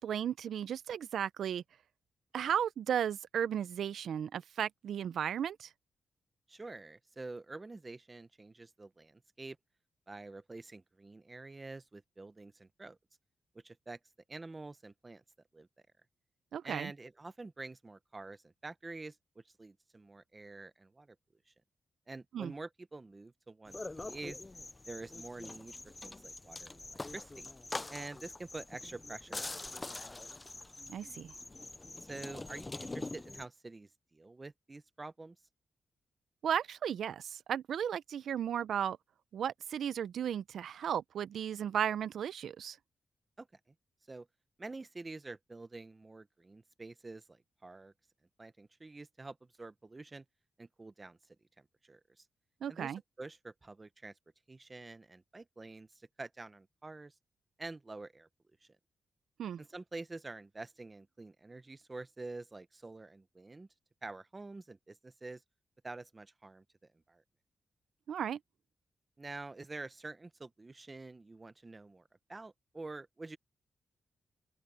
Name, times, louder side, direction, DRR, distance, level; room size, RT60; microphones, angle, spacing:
voice 1, 0.0-1.6 2.3-5.7 16.5-16.9 22.3-22.5 30.9-31.3 36.4-39.0 39.3-42.8 52.6-53.0 59.4-59.6 68.1-68.4, right 9 dB, 90° right, 0.5 m, -35 dB
voice 2, 6.5-9.6 10.1-13.0 13.5-14.0 14.3-15.2 15.5-15.7 16.6-21.2 21.5-21.6 22.1-24.4 24.9-27.5 27.9-30.1 32.0-35.4 43.4-43.7 44.1-44.3 44.6-47.9 48.4-50.2 50.6-51.2 51.8-52.3 52.7-54.2 54.5-57.2 57.6-58.3 58.6-58.7 59.6-63.7 64.0-65.4 65.8-66.6 67.1-67.2 69.2-73.4, right 3 dB, 20° right, 0.7 m, -47 dB
sound 1, 23.7-33.5, left 2 dB, 20° left, 0.4 m, -44 dB
wide cardioid pair, 145°, 0 cm